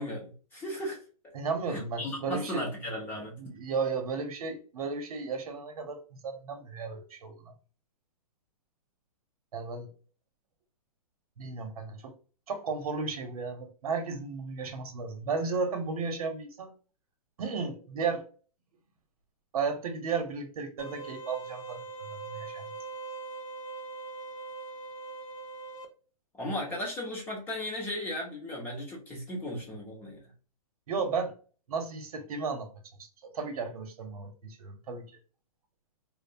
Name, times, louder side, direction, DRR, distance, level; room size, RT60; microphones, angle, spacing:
voice 1, 0.0-1.3 1.7-3.4 26.3-30.3, left 1 dB, 10° left, 0.6 m, -36 dB
voice 2, 1.3-2.6 3.1-7.5 9.5-9.9 11.4-12.2 12.5-16.7 17.4-18.3 19.5-22.7 30.9-31.3 31.7-32.7 33.0-35.1, right 4 dB, 70° right, 0.7 m, -34 dB
sound 1, 20.8-25.9, right 3 dB, 60° left, 0.6 m, -41 dB
2.6 x 2.0 x 2.5 m
hypercardioid pair, 160°, 19 cm